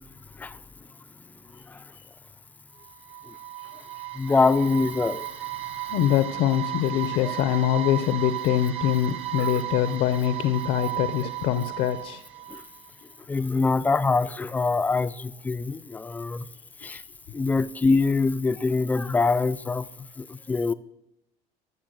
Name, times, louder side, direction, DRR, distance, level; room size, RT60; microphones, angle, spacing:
sound 1, 2.8-12.9, right 15 dB, 45° right, 1.0 m, -35 dB
voice 1, 4.1-5.3 7.2-7.3 9.5-9.6 12.5-12.6 13.3-16.5 16.8-17.0 17.3-19.9 20.2-20.7, left 4 dB, 10° left, 0.4 m, -24 dB
voice 2, 5.9-12.2, left 11 dB, 65° left, 0.7 m, -24 dB
13.5 x 7.1 x 6.6 m
cardioid pair, 155°, 14 cm